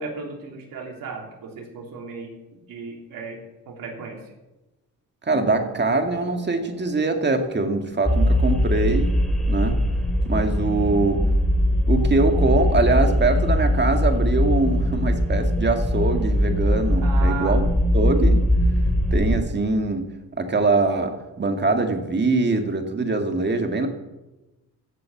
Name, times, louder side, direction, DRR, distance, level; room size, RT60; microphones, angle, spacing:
voice 1, 0.0-3.4 3.7-4.2 17.0-17.6, right 4 dB, 80° right, 1 dB, 3.3 m, -35 dB
Harp, 5.3-12.8 13.0-14.2 14.4-15.1, right 2 dB, 85° left, 5.1 m, -46 dB
voice 2, 5.3-9.1 9.5-9.8 10.2-11.2 11.9-17.6 17.9-18.4 19.1-20.1 20.4-23.9, right 3 dB, 30° right, 5 dB, 2.0 m, -23 dB
sound 1, 8.0-19.4, equal, ahead, 2.7 m, -21 dB
15.0 x 7.9 x 7.2 m, 1.0 s
cardioid pair, 90°, 34 cm